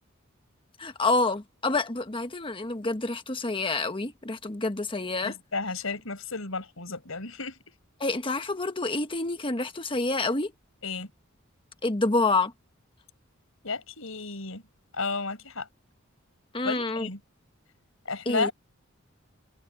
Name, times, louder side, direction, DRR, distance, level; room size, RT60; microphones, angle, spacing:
voice 1, 0.8-5.3 8.0-10.5 11.8-12.5 16.5-17.1 18.2-18.5, left 3 dB, 25° left, 1.4 m, -28 dB
voice 2, 5.2-7.6 10.8-11.1 13.6-14.6 14.9-15.7 16.6-17.2 18.1-18.5, left 4 dB, 80° left, 5.2 m, -32 dB
head